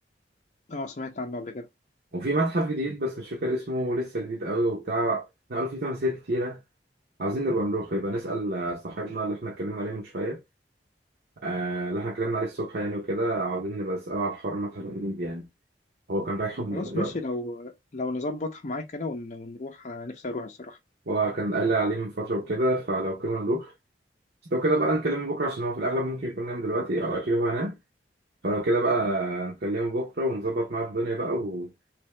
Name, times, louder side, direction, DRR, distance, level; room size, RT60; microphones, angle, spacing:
voice 1, 0.7-1.7 16.7-20.8, left 2 dB, 45° left, 0.6 m, -33 dB
voice 2, 2.1-6.6 7.2-10.4 11.4-15.5 16.1-17.1 21.1-23.7 24.5-27.8 28.4-31.7, right 1 dB, 60° right, 0.8 m, -28 dB
3.4 x 2.7 x 3.2 m
head